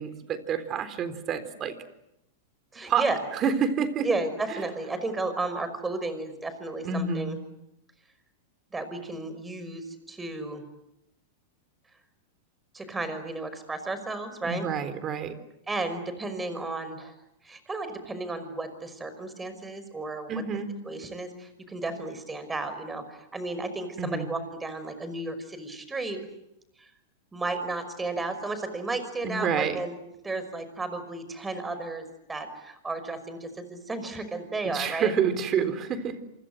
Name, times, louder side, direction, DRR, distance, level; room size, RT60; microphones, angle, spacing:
voice 1, 0.0-1.7 2.9-3.0 3.3-4.1 6.8-7.3 14.4-15.4 20.3-20.7 24.0-24.3 29.2-29.8 34.6-36.2, right 6 dB, 30° right, 11 dB, 3.8 m, -28 dB
voice 2, 2.7-3.2 4.0-7.4 8.7-10.6 12.7-14.7 15.7-17.1 17.4-20.3 20.9-26.2 26.8-26.9 27.3-30.0 30.2-35.1, right 2 dB, 10° right, 11 dB, 5.5 m, -33 dB
27.5 x 26.5 x 8.0 m, 0.83 s
supercardioid pair, 135°, 0 cm